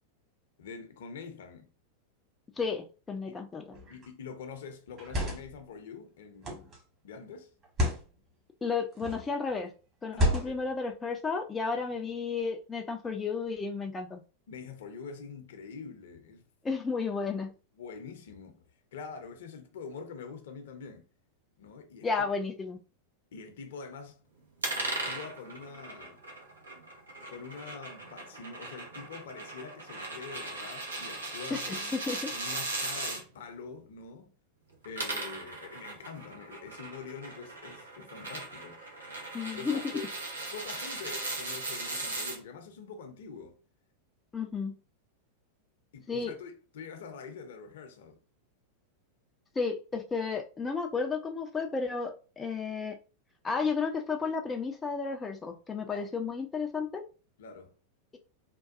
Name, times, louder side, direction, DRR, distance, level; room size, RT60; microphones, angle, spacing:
voice 1, 0.6-1.7 3.2-3.4 3.9-6.7 7.0-7.5 10.1-10.6 14.5-16.4 17.8-18.6 18.9-21.1 21.6-22.1 23.3-24.2 24.7-26.2 27.3-34.3 34.8-38.8 39.5-40.1 40.5-43.6 45.9-48.2 55.9-56.1 57.4-57.7, left 5 dB, 60° left, 0.6 m, -45 dB
voice 2, 2.6-3.6 8.6-9.7 10.0-14.2 16.6-17.5 22.0-22.8 31.5-32.3 39.3-39.8 44.3-44.7 46.1-46.3 49.6-52.9 53.4-57.0, left 4 dB, 15° left, 0.4 m, -32 dB
sound 1, 3.7-4.1 4.9-5.6 6.4-6.8 7.6-8.1 8.9-9.3 10.1-10.7, left 1 dB, 30° right, 1.4 m, -30 dB
sound 2, 24.6-33.2 34.7-42.4, right 2 dB, 75° right, 0.9 m, -38 dB
3.6 x 2.2 x 2.5 m
figure-of-eight pair, 90°, 0 cm